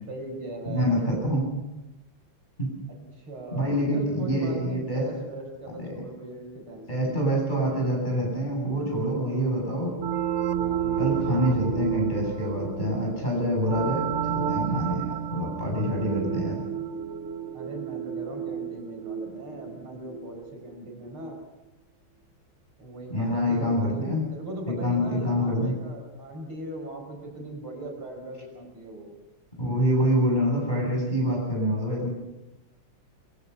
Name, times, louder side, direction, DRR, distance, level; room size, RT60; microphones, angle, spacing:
voice 1, 0.1-0.9 3.2-7.4 8.9-9.5 10.6-11.0 17.5-21.4 22.8-29.1, right 1 dB, 90° right, 2 dB, 6.2 m, -39 dB
voice 2, 0.7-1.5 2.6-2.7 3.5-5.1 5.8-6.0 6.9-9.9 11.0-16.6 23.1-24.3 24.7-25.8 29.6-32.1, equal, 20° left, 0 dB, 8.0 m, -26 dB
sound 1, 10.0-20.4, right 9 dB, 55° right, 0.8 m, -31 dB
23.5 x 23.0 x 5.8 m, 0.99 s
omnidirectional pair, 2.3 m